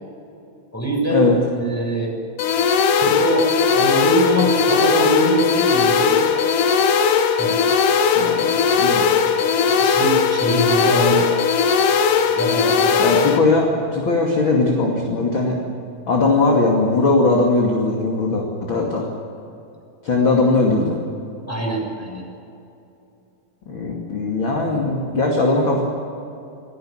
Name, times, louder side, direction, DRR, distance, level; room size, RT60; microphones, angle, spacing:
voice 1, 0.7-2.1 3.0-3.5 3.7-6.3 7.4-7.5 9.7-11.3 12.3-13.0 21.5-22.2, right 1 dB, 5° left, 0 dB, 6.5 m, -23 dB
sound 1, 2.4-13.4, left 6 dB, 65° left, 2.8 m, -18 dB
voice 2, 8.1-9.2 13.0-15.6 16.1-19.1 20.0-21.0 23.7-25.8, left 3 dB, 35° left, 0 dB, 2.9 m, -19 dB
28.0 x 17.0 x 9.0 m, 2.7 s
omnidirectional pair, 4.2 m